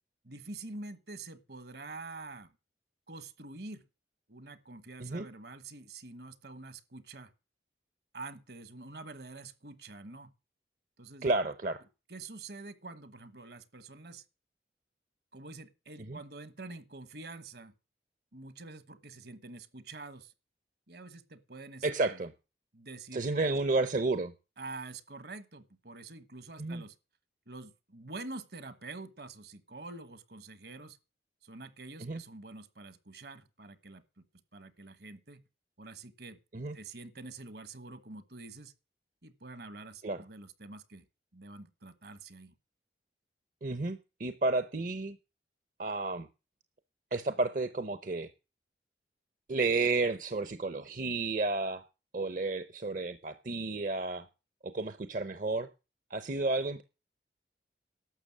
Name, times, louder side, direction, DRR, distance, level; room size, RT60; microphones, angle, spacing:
voice 1, 0.2-2.5 3.1-3.8 4.3-7.3 8.1-10.3 11.0-11.3 12.1-14.2 15.3-17.7 18.3-20.3 20.9-22.2 22.7-23.6 24.6-26.9 27.5-31.0 31.4-34.0 34.5-35.4 35.8-36.4 36.7-38.7 39.2-41.0 41.3-42.5, right 3 dB, 65° right, 1.4 m, -46 dB
voice 2, 11.2-11.8 16.1-16.2 21.8-22.3 23.1-24.3 26.6-26.8 32.0-32.2 36.5-36.8 40.0-40.2 43.6-45.2 45.8-46.3 47.1-48.3 49.5-51.8 52.1-54.3 54.6-55.7 56.1-56.8, right 3 dB, 45° right, 0.7 m, -31 dB
12.0 x 7.1 x 7.2 m
head